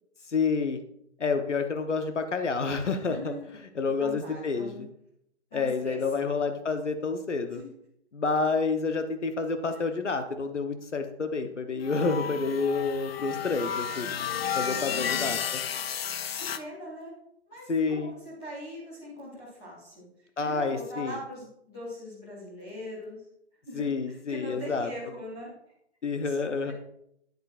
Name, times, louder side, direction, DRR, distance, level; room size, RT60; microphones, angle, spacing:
voice 1, 0.3-0.8 1.2-3.3 3.7-4.9 5.5-7.6 8.1-14.1 14.5-15.6 17.7-18.1 20.4-21.2 23.7-24.9 26.0-26.7, left 4 dB, 90° left, 8 dB, 0.9 m, -29 dB
voice 2, 3.1-3.4 4.0-4.9 5.5-6.3 7.5-7.7 12.0-12.4 14.7-15.4 16.4-17.1 17.5-20.1 20.4-23.2 23.6-25.5 26.2-26.7, equal, 5° left, -9 dB, 0.4 m, -41 dB
sound 1, 11.8-16.6, left 8 dB, 60° left, 0.5 m, -32 dB
9.5 x 8.4 x 2.4 m, 0.74 s
figure-of-eight pair, 135°, 35 cm